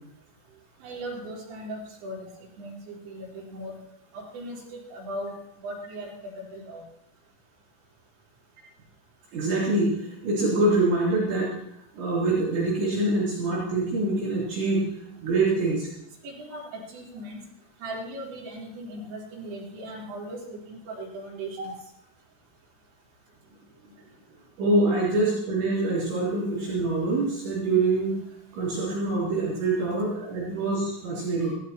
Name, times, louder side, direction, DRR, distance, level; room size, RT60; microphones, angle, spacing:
voice 1, 0.8-2.3 2.6-3.8 4.1-5.3 5.6-6.8 16.2-17.4 17.8-21.7, right 1 dB, 90° right, -4 dB, 6.6 m, -38 dB
voice 2, 9.3-11.5 12.0-14.9 15.2-15.9 24.6-28.1 28.5-31.5, right 2 dB, 65° right, -7 dB, 5.5 m, -25 dB
21.0 x 16.5 x 3.0 m, 0.79 s
omnidirectional pair, 5.6 m